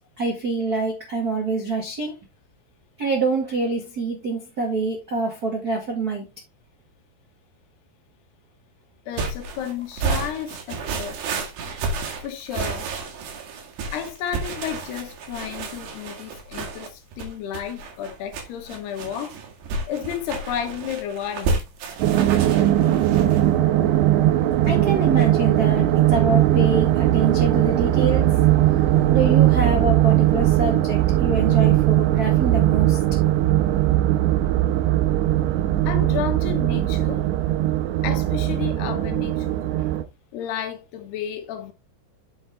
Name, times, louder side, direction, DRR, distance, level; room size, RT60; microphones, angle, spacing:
voice 1, 0.2-2.1 3.0-6.3 24.6-28.3 29.1-33.0, right 3 dB, 50° right, 1.1 m, -25 dB
voice 2, 9.1-11.3 12.2-12.9 13.9-19.4 19.9-21.6 26.3-26.4 35.9-37.3 38.0-39.6 40.3-41.7, left 9 dB, 70° left, 3.0 m, -32 dB
sound 1, 9.2-23.5, right 4 dB, 70° right, 3.9 m, -31 dB
sound 2, 22.0-40.0, right 13 dB, 90° right, 3.1 m, -19 dB
7.9 x 7.0 x 3.4 m
omnidirectional pair, 5.2 m